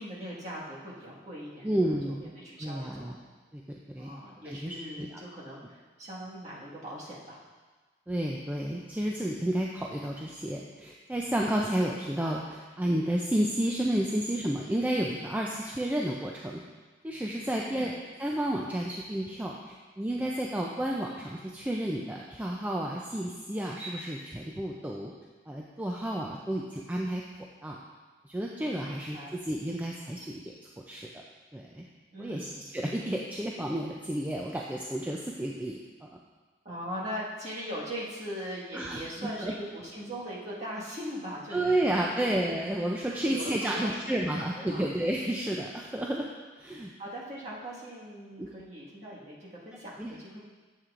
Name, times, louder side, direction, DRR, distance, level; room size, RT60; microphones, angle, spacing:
voice 1, 0.0-1.7 2.2-3.1 4.0-7.4 17.6-17.9 28.8-29.3 32.1-32.7 36.6-42.3 43.1-44.8 45.3-45.4 47.0-50.4, equal, 35° right, -6 dB, 1.6 m, -40 dB
voice 2, 1.6-2.2 2.6-3.2 3.5-3.6 3.9-4.1 4.4-5.1 8.1-16.6 17.0-17.9 18.2-25.1 25.5-27.2 27.6-27.8 28.3-30.4 30.9-31.1 31.5-31.8 32.2-32.5 32.7-36.2 38.7-39.5 41.5-46.3 46.6-46.9 48.4-48.5 50.0-50.2, right 1 dB, 10° right, -2 dB, 0.3 m, -31 dB
9.6 x 7.3 x 2.5 m, 1.3 s
head